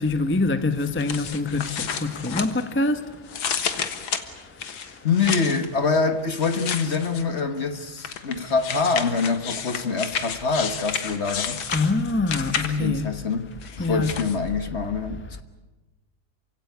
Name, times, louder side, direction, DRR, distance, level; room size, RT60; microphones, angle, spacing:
voice 1, 0.0-3.1 11.7-13.1 13.8-14.1, left 2 dB, 15° left, 0.4 m, -24 dB
sound 1, 0.8-2.9 3.3-5.7 6.4-7.4 8.0-13.0 13.6-14.4, left 7 dB, 70° left, 2.2 m, -31 dB
voice 2, 5.0-11.7 12.6-13.5 13.8-15.4, left 4 dB, 40° left, 1.2 m, -25 dB
28.0 x 16.5 x 9.5 m
omnidirectional pair, 2.3 m